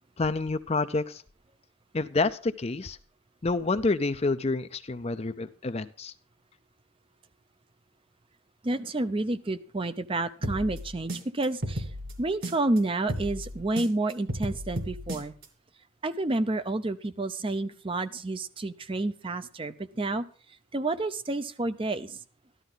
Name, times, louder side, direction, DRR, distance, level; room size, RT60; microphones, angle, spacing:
voice 1, 0.2-1.2 1.9-3.0 3.4-6.1, left 3 dB, 30° left, 12 dB, 0.5 m, -28 dB
voice 2, 8.6-11.9 12.2-15.3 16.0-20.2 20.7-22.2, right 2 dB, 25° right, 11 dB, 0.6 m, -30 dB
sound 1, 10.4-12.8 13.1-15.5, equal, 55° right, 2.5 m, -34 dB
13.5 x 12.5 x 3.9 m, 0.40 s
head